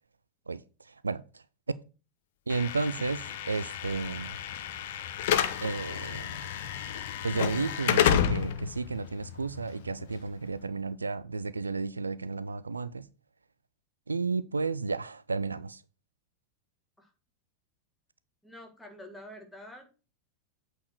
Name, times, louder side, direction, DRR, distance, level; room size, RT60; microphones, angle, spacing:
voice 1, 0.5-1.8 2.5-4.4 5.6-6.3 7.2-13.1 14.1-15.8, right 4 dB, 75° right, 0.4 m, -33 dB
Slam / Alarm, 2.5-10.6, left 9 dB, 55° left, 0.8 m, -31 dB
voice 2, 18.4-20.0, left 1 dB, 5° left, 1.9 m, -47 dB
8.4 x 4.5 x 6.3 m
figure-of-eight pair, 90°, 0 cm